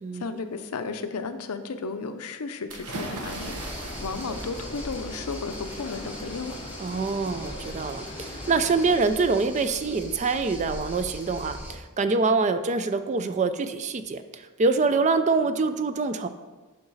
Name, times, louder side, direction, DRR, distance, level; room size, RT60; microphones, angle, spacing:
voice 1, 0.1-3.5 4.0-6.6, left 4 dB, 85° left, 9 dB, 0.6 m, -34 dB
sound 1, 2.7-7.5, right 2 dB, 85° right, 1.0 m, -41 dB
sound 2, 2.9-9.0, left 2 dB, 25° left, 0.6 m, -42 dB
sound 3, 3.3-11.8, equal, 10° right, 1.0 m, -40 dB
voice 2, 6.8-16.3, right 4 dB, 30° right, 10 dB, 0.4 m, -25 dB
11.5 x 3.9 x 4.0 m, 1.3 s
head